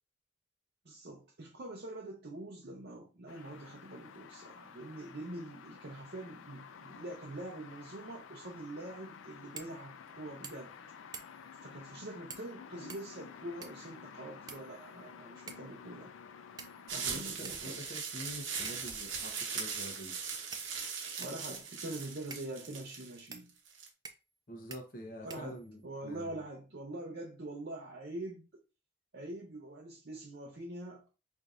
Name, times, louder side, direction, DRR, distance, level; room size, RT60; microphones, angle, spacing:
voice 1, 0.8-10.7 11.6-16.1 16.9-17.9 21.2-23.5 25.2-28.6 29.1-31.1, right 1 dB, 55° right, 0.6 m, -44 dB
sound 1, 3.3-17.2, left 6 dB, 80° left, 0.4 m, -52 dB
sound 2, 9.5-9.8 10.1-10.2 10.4-10.8 11.1-11.5 12.3-12.5 12.9-13.9 14.5-15.1 15.5-15.7 16.6-17.0 17.4-17.6 18.6-19.0 19.8-19.9 20.5-21.4 22.3-22.5 23.3-23.5 24.0-24.4 24.7-24.8 25.3-25.9, right 5 dB, 20° right, 0.3 m, -49 dB
sound 3, 16.9-23.9, right 6 dB, 80° right, 1.0 m, -40 dB
voice 2, 17.1-20.1 24.5-26.4, equal, 45° left, 0.9 m, -46 dB
4.7 x 2.6 x 2.5 m
head